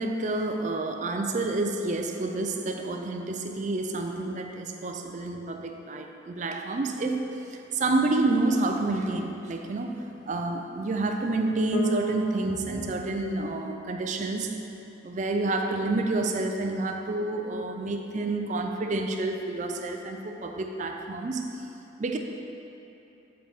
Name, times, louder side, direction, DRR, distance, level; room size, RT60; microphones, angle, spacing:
voice 1, 0.0-14.5 15.0-21.5 22.0-22.2, right 2 dB, 40° right, 4 dB, 0.4 m, -29 dB
Bass guitar, 11.7-15.6, right 1 dB, 50° left, 0.6 m, -37 dB
6.5 x 5.1 x 4.4 m, 2.9 s
head